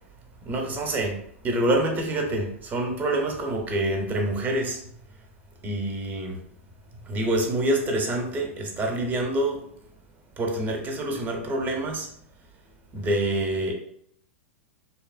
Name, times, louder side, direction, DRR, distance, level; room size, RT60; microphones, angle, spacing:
voice 1, 0.4-1.2 1.4-4.8 5.6-6.4 7.0-9.6 10.4-12.1 12.9-13.7, right 1 dB, 25° right, 2 dB, 0.6 m, -26 dB
2.8 x 2.0 x 2.4 m, 0.67 s
hypercardioid pair, 105°, 8 cm